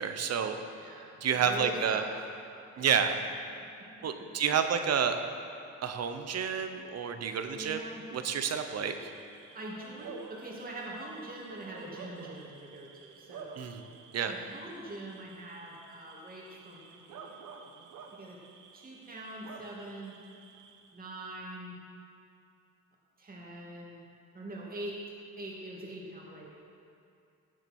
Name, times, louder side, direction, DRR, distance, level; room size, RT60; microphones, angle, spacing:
voice 1, 0.0-0.6 1.2-2.0 2.8-3.2 4.0-5.2 5.8-7.8 8.1-9.0 13.6-13.8 14.1-14.3, right 7 dB, 55° right, 7 dB, 1.0 m, -29 dB
voice 2, 0.7-2.1 3.8-4.6 7.6-8.0 9.5-13.6 14.2-17.4 18.1-18.4 18.7-20.2 20.9-21.8 23.2-24.0 24.3-25.0 25.4-26.6, right 1 dB, 30° right, -3 dB, 2.5 m, -43 dB
Bark / Cricket, 7.9-21.1, right 5 dB, 80° right, 1.1 m, -51 dB
16.5 x 7.6 x 4.5 m, 2.5 s
cardioid pair, 90°, 30 cm